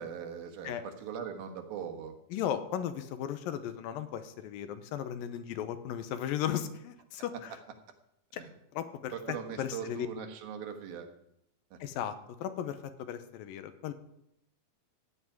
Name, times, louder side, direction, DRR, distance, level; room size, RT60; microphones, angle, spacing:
voice 1, 0.0-2.1 8.3-8.5 9.1-11.1 11.7-11.8, right 7 dB, 85° right, 5 dB, 3.3 m, -40 dB
voice 2, 2.3-7.6 8.3-8.4 8.7-10.1 11.8-13.9, left 10 dB, 80° left, 10 dB, 2.6 m, -36 dB
15.5 x 6.0 x 9.7 m, 0.79 s
omnidirectional pair, 4.1 m